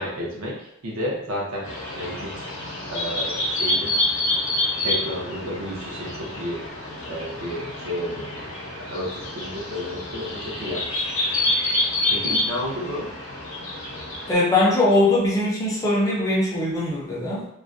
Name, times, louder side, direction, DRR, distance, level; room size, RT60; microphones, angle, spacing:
voice 1, 0.0-1.7 1.9-2.5 2.9-3.9 4.7-6.7 7.0-8.5 8.7-11.0 12.1-13.1, equal, 70° right, -3 dB, 0.7 m, -31 dB
sound 1, 1.6-14.3, left 1 dB, 65° left, 0.7 m, -27 dB
voice 2, 14.3-17.5, left 1 dB, 15° left, -5 dB, 0.4 m, -21 dB
2.4 x 2.0 x 2.5 m, 0.78 s
head